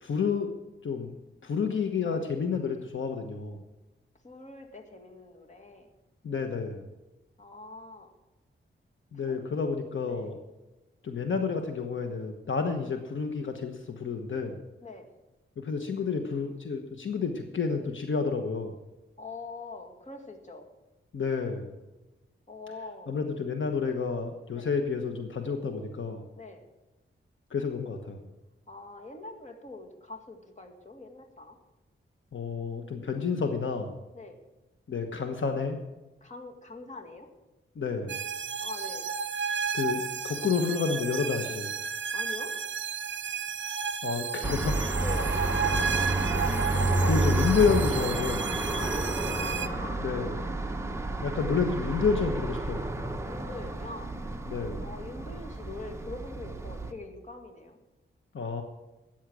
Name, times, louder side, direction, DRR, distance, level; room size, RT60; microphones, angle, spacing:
voice 1, 0.0-0.5 0.8-1.1 1.4-3.6 6.2-6.8 9.1-10.4 11.0-14.6 15.6-18.7 21.1-21.7 23.1-26.2 27.5-28.2 32.3-34.0 34.9-35.8 37.7-38.2 39.7-41.7 44.0-44.8 46.8-48.5 50.0-50.4 51.2-52.9 54.5-54.8 58.3-58.6, left 5 dB, 70° left, 5 dB, 1.2 m, -30 dB
voice 2, 4.2-5.9 7.4-8.1 9.2-9.4 10.1-10.3 14.8-15.1 19.2-20.7 22.5-23.2 24.5-24.7 26.4-26.7 28.7-31.6 34.1-34.4 36.2-37.3 38.6-39.1 42.1-42.5 45.0-45.4 48.7-50.1 53.2-54.1 54.8-57.8, left 2 dB, 35° left, 2 dB, 2.1 m, -43 dB
sound 1, 38.1-49.7, right 6 dB, 65° right, 0.7 m, -33 dB
sound 2, 44.4-56.9, right 2 dB, 15° right, 1.0 m, -30 dB
13.5 x 9.1 x 6.2 m, 1.1 s
wide cardioid pair, 130°, 21 cm